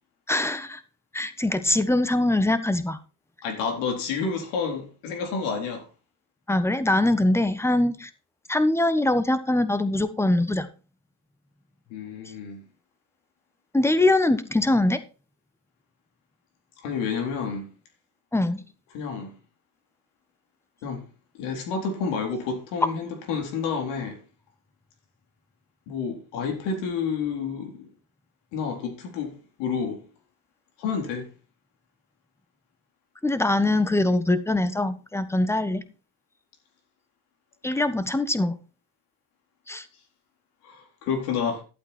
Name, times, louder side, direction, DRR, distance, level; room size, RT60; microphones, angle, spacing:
voice 1, 0.3-0.8 1.1-3.0 6.5-8.1 8.5-10.7 13.7-15.0 18.3-18.6 33.2-35.8 37.6-38.5 39.7-39.8, left 2 dB, 5° left, 1.3 m, -23 dB
voice 2, 3.4-5.8 11.9-12.6 16.8-17.7 18.9-19.3 20.8-21.0 21.3-24.2 25.9-27.9 28.5-30.0 30.8-31.3 40.6-41.6, left 5 dB, 80° left, 4.1 m, -29 dB
12.0 x 8.1 x 4.5 m
supercardioid pair, 95°, 42 cm